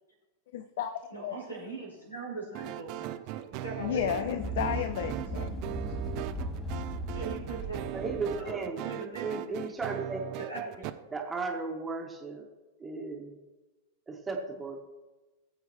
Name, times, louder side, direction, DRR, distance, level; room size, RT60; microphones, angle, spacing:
voice 1, 0.5-0.9 1.2-1.4 3.8-5.7, left 9 dB, 55° left, 10 dB, 0.5 m, -32 dB
voice 2, 1.1-4.5 7.1-7.9 8.4-9.6 10.4-10.9, right 3 dB, 85° left, -4 dB, 4.3 m, -40 dB
sound 1, 2.5-10.9, right 15 dB, 40° right, 0.5 m, -39 dB
sound 2, 3.8-8.5, right 1 dB, 10° left, 2.8 m, -37 dB
voice 3, 7.9-8.8 9.2-10.4 11.1-12.4 12.8-13.3 14.1-14.8, right 3 dB, 15° right, 1 dB, 1.6 m, -35 dB
18.0 x 8.0 x 3.1 m, 1.1 s
figure-of-eight pair, 90°, 0 cm